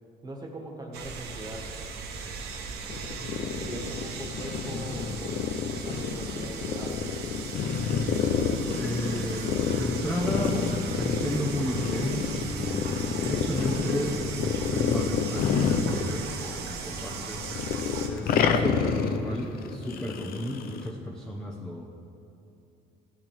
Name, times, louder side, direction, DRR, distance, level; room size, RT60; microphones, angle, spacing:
voice 1, 0.2-1.7 3.0-5.5 5.8-7.1, right 1 dB, 25° right, 1 dB, 1.6 m, -41 dB
sound 1, 0.9-18.1, right 5 dB, 80° right, 1.2 m, -38 dB
sound 2, 2.9-16.7 16.9-20.9, left 6 dB, 65° left, 0.7 m, -29 dB
voice 2, 8.8-17.5 18.1-22.1, equal, 5° left, -3 dB, 0.9 m, -33 dB
15.0 x 8.7 x 3.6 m, 2.7 s
cardioid pair, 110°, 17 cm